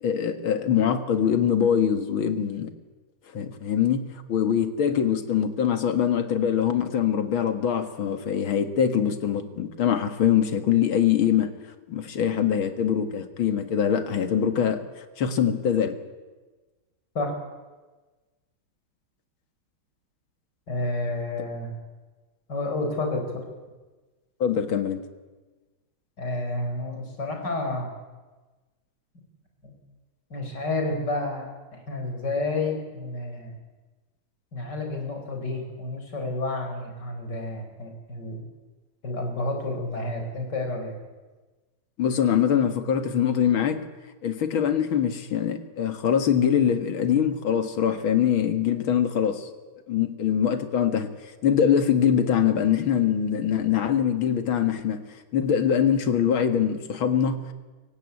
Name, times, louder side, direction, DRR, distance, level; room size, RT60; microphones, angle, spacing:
voice 1, 0.0-2.7 3.3-11.5 11.9-14.8 15.2-16.0 24.4-25.0 42.0-43.8 44.2-49.5 49.9-51.1 51.4-55.0 55.3-57.5, left 8 dB, 80° left, 9 dB, 2.5 m, -23 dB
voice 2, 20.7-21.7 22.5-23.4 26.2-27.9 29.6-29.7 30.3-31.5 31.9-33.5 34.5-38.4 39.0-40.9, left 2 dB, 55° left, 3 dB, 5.2 m, -30 dB
24.0 x 16.5 x 9.6 m, 1.3 s
omnidirectional pair, 2.2 m